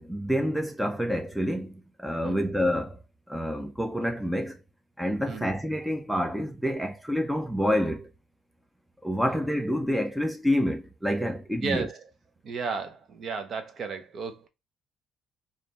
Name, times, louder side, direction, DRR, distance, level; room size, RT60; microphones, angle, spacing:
voice 1, 0.0-3.0 3.3-4.6 5.0-8.1 9.0-11.9, equal, ahead, 0.5 m, -28 dB
voice 2, 11.6-12.0 12.4-14.5, right 5 dB, 45° right, 0.7 m, -34 dB
3.3 x 2.5 x 4.0 m
cardioid pair, 125°, 0 cm